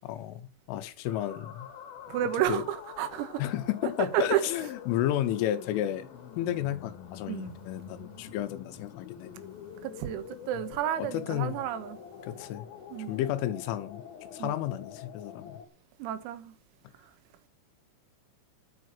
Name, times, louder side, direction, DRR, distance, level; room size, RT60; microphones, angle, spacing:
voice 1, 0.0-1.7 2.5-2.6 3.4-6.1 6.4-9.3 11.0-11.6 12.2-12.7 13.1-14.0 14.3-15.6, left 12 dB, 80° left, 3.2 m, -32 dB
sound 1, 1.0-15.6, left 8 dB, 60° left, 2.7 m, -46 dB
voice 2, 2.1-3.4 4.0-4.7 7.3-7.5 9.8-12.0 12.9-13.2 14.4-14.6 16.0-16.6, right 12 dB, 90° right, 4.1 m, -31 dB
10.5 x 9.4 x 7.5 m
omnidirectional pair, 6.0 m